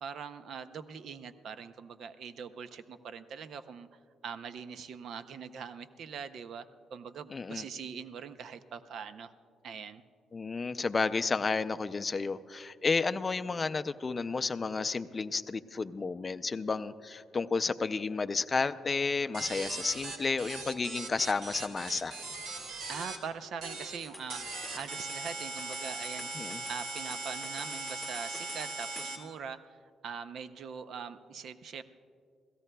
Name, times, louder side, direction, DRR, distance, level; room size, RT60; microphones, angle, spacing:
voice 1, 0.0-3.9 4.2-9.3 9.6-10.0 22.9-31.8, right 6 dB, 60° right, 11 dB, 0.6 m, -42 dB
voice 2, 7.3-7.6 10.3-22.2 26.4-26.6, left 4 dB, 30° left, 11 dB, 0.4 m, -32 dB
sound 1, 19.3-23.2 23.6-24.0 24.3-29.2, right 3 dB, 80° right, 1.8 m, -39 dB
sound 2, 24.0-29.1, left 1 dB, 10° right, 2.0 m, -48 dB
27.5 x 16.5 x 2.3 m, 2.3 s
cardioid pair, 110°, 0 cm